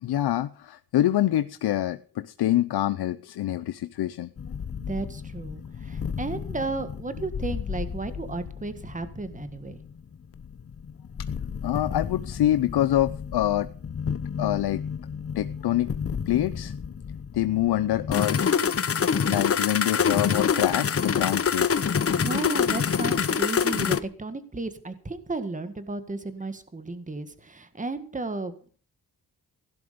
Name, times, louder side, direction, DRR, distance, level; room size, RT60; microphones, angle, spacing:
voice 1, 0.0-4.3 11.6-13.7 14.4-14.8 15.4-16.0 16.3-16.7 17.3-18.4 19.3-21.8, left 13 dB, 80° left, 12 dB, 0.7 m, -25 dB
sound 1, 4.4-24.0, left 7 dB, 35° left, 0.9 m, -28 dB
voice 2, 4.9-9.8 22.1-28.6, right 3 dB, 20° right, 10 dB, 1.8 m, -33 dB
16.5 x 11.0 x 5.2 m, 0.41 s
cardioid pair, 110°, 38 cm